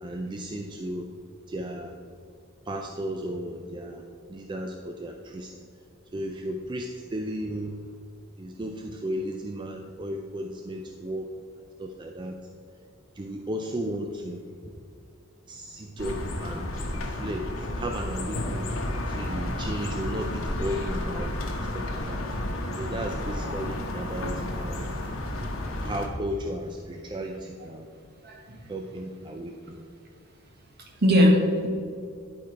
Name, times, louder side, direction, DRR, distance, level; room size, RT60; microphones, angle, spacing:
voice 1, 0.0-1.1 1.5-2.0 2.7-5.5 6.1-7.9 8.4-11.3 11.8-12.4 13.2-14.4 15.5-18.7 19.1-22.2 22.8-24.9 25.8-27.9 28.7-29.8, right 1 dB, 25° right, 3 dB, 0.4 m, -35 dB
sound 1, 16.0-26.1, left 1 dB, 90° left, 1.1 m, -32 dB
voice 2, 28.2-28.6 30.8-31.7, equal, 50° right, 1 dB, 1.4 m, -21 dB
11.0 x 4.5 x 4.7 m, 2.3 s
head